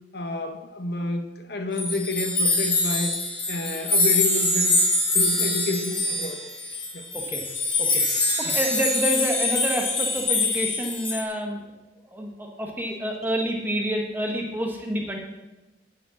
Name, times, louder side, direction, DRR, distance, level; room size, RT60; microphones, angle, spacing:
voice 1, 0.1-3.1 3.5-4.8 5.1-6.4 6.9-7.0 8.4-8.6, left 2 dB, 55° left, 5 dB, 0.9 m, -29 dB
sound 1, 1.8-11.2, left 2 dB, 25° left, 1.5 m, -24 dB
voice 2, 7.1-7.4 7.8-8.0 8.4-11.7 12.0-15.2, equal, 10° right, 1 dB, 1.0 m, -28 dB
9.0 x 5.1 x 7.2 m, 1.1 s
head